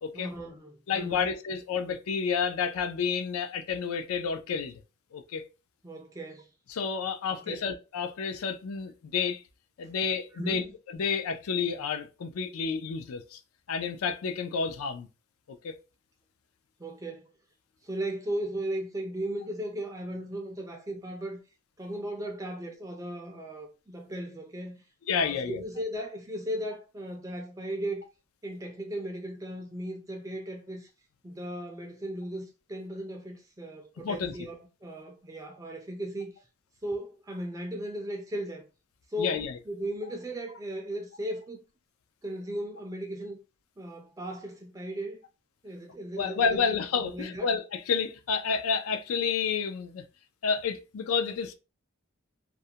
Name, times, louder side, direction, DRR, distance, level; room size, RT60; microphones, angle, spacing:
voice 1, 0.1-1.3 5.8-6.5 7.3-7.7 9.8-9.9 10.3-10.7 16.8-17.3 17.8-21.4 21.8-24.8 25.1-28.1 28.4-30.9 31.2-36.3 36.8-38.7 39.1-41.6 42.2-43.4 43.8-45.2 45.6-46.6 47.0-47.5, right 1 dB, 15° right, 0.3 m, -36 dB
voice 2, 0.9-4.8 5.1-5.4 6.7-9.4 9.8-10.6 10.9-13.4 13.7-15.1 15.5-15.8 25.1-25.6 34.0-34.4 39.2-39.6 46.2-50.0 50.4-51.5, left 6 dB, 85° left, 0.4 m, -30 dB
2.4 x 2.1 x 2.7 m
head